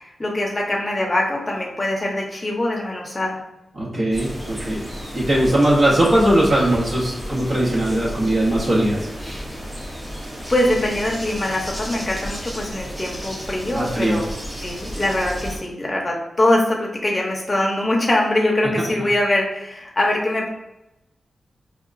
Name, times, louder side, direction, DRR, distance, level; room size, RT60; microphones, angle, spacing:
voice 1, 0.0-3.4 10.5-14.3 14.6-20.5, left 1 dB, 20° left, -1 dB, 0.7 m, -22 dB
voice 2, 3.7-4.8 5.1-9.4 13.7-14.2, right 1 dB, 60° right, -7 dB, 1.2 m, -19 dB
sound 1, 4.1-15.6, equal, 15° right, 0.6 m, -33 dB
4.7 x 2.3 x 2.5 m, 0.92 s
wide cardioid pair, 150°, 0 cm